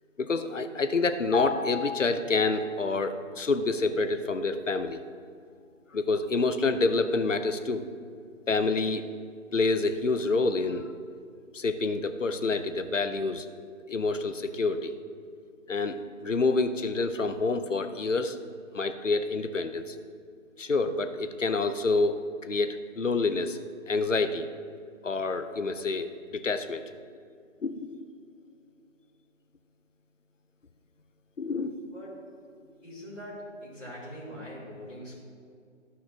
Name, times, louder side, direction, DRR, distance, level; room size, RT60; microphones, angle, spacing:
voice 1, 0.2-5.0 5.9-7.8 8.5-9.0 9.5-10.8 11.5-13.4 13.9-14.9 15.7-16.0 16.2-18.4 18.7-19.9 20.6-22.2 22.4-23.6 23.9-24.4 25.0-26.8 27.6-28.0 31.4-31.7, left 3 dB, 65° left, 9 dB, 0.8 m, -27 dB
sound 1, 1.3-3.0 3.2-3.4, left 5 dB, 50° left, 1.1 m, -35 dB
voice 2, 32.8-35.2, equal, 5° left, -17 dB, 2.0 m, -42 dB
14.5 x 5.7 x 2.8 m, 2.3 s
figure-of-eight pair, 160°, 40 cm